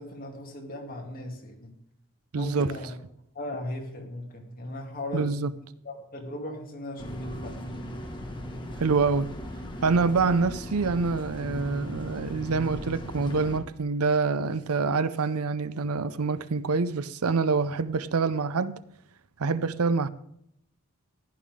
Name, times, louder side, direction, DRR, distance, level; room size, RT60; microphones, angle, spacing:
voice 1, 0.0-1.7 2.3-2.9 3.3-5.5 5.8-7.6, left 1 dB, 40° left, 2.7 m, -38 dB
voice 2, 2.3-2.7 5.1-5.5 8.8-9.3 9.8-18.8 19.4-20.1, right 4 dB, 80° right, 0.6 m, -26 dB
sound 1, 7.0-13.6, equal, 20° left, 1.7 m, -37 dB
15.0 x 11.5 x 3.7 m
head